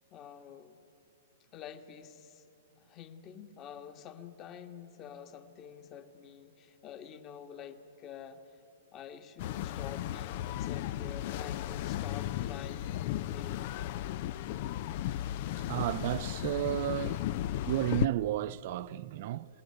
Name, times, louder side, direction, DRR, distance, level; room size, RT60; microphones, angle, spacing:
voice 1, 0.1-0.8 1.5-2.5 2.8-8.6 8.9-13.7, left 8 dB, 30° left, 1.6 m, -48 dB
sound 1, 9.4-18.1, left 13 dB, 50° left, 0.5 m, -35 dB
voice 2, 15.7-17.2 17.7-19.5, right 13 dB, 55° right, 0.5 m, -32 dB
27.5 x 19.0 x 9.8 m
hypercardioid pair, 125°, 0 cm